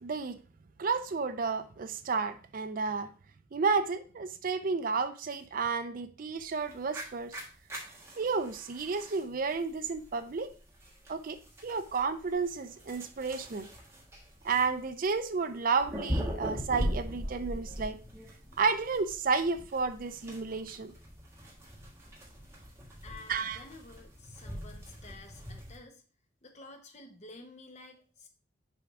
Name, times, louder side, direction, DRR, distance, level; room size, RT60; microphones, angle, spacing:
voice 1, 0.0-0.4 0.8-3.1 3.5-7.4 8.2-10.5 11.1-13.7 14.4-18.0 18.6-20.9 23.3-23.6, right 4 dB, 45° right, 0.4 m, -31 dB
sound 1, 6.4-25.8, equal, 15° right, 1.5 m, -41 dB
voice 2, 23.0-26.0 26.4-28.3, left 2 dB, 35° left, 1.0 m, -51 dB
6.9 x 3.6 x 4.7 m
head